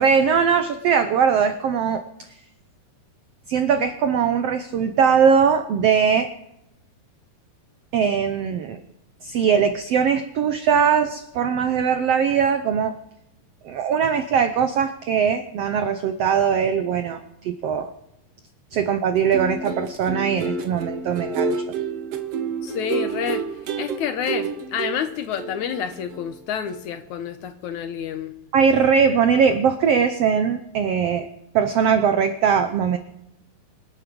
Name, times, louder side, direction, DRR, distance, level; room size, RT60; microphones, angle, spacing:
voice 1, 0.0-2.0 3.5-6.3 7.9-8.8 9.2-13.0 13.6-17.9 18.7-21.8 28.5-31.3 31.5-33.0, right 7 dB, 85° right, 9 dB, 1.3 m, -20 dB
sound 1, 19.2-26.4 26.7-26.9, right 5 dB, 60° right, 1.8 m, -29 dB
voice 2, 22.6-23.4 23.8-28.3, left 9 dB, 70° left, 9 dB, 2.0 m, -29 dB
26.0 x 8.7 x 6.2 m, 0.82 s
omnidirectional pair, 4.0 m